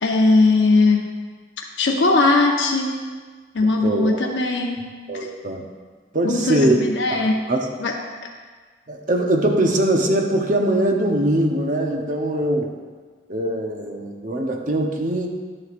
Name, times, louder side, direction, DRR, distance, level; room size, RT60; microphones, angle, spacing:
voice 1, 0.0-1.1 1.8-2.9 3.5-4.8 6.2-7.4 7.8-8.0, left 3 dB, 80° left, 0 dB, 0.7 m, -19 dB
voice 2, 3.6-4.2 5.1-5.7 6.1-6.8 7.1-7.7 8.9-12.7 13.3-15.3, right 1 dB, 45° right, 2 dB, 0.9 m, -22 dB
11.0 x 7.6 x 2.5 m, 1.5 s
head